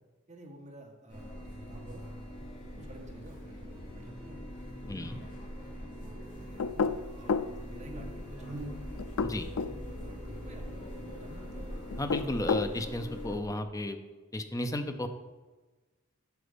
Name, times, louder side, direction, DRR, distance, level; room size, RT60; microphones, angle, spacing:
voice 1, 0.3-2.1 2.6-4.4 4.9-5.1 5.9-6.7 7.1-8.7 9.9-11.8, right 1 dB, 35° right, 1 dB, 1.4 m, -51 dB
sound 1, 1.1-13.4, equal, 40° left, 2.7 m, -43 dB
Buzz, 1.6-13.7, equal, 15° right, 3.2 m, -52 dB
sound 2, 6.6-7.5 9.0-9.8 11.9-12.7, left 5 dB, 80° left, 0.4 m, -30 dB
voice 2, 12.0-14.0 14.3-15.1, left 1 dB, 15° left, 8 dB, 0.6 m, -33 dB
8.0 x 6.2 x 5.2 m, 1.2 s
head